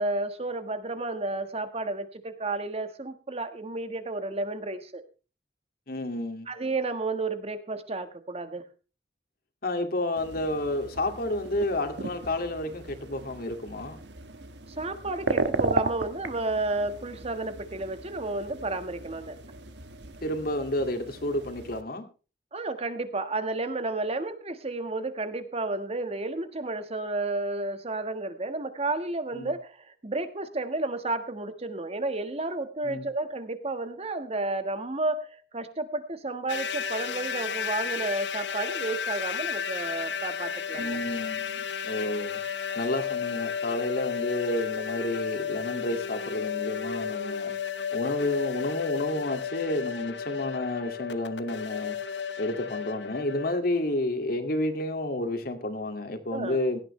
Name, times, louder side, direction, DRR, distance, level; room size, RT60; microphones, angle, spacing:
voice 1, 0.0-5.0 6.5-8.6 14.8-19.4 22.5-41.0 56.3-56.6, right 2 dB, 35° right, 9 dB, 1.5 m, -32 dB
voice 2, 5.9-6.5 9.6-14.0 20.2-22.0 29.3-29.5 32.8-33.1 40.7-47.5 47.9-52.0 52.4-56.8, left 1 dB, 60° left, 7 dB, 2.3 m, -30 dB
sound 1, 10.2-21.8, right 2 dB, 75° right, 1.4 m, -36 dB
sound 2, 36.5-53.6, left 7 dB, 85° left, 1.1 m, -33 dB
17.0 x 12.5 x 3.3 m, 0.34 s
head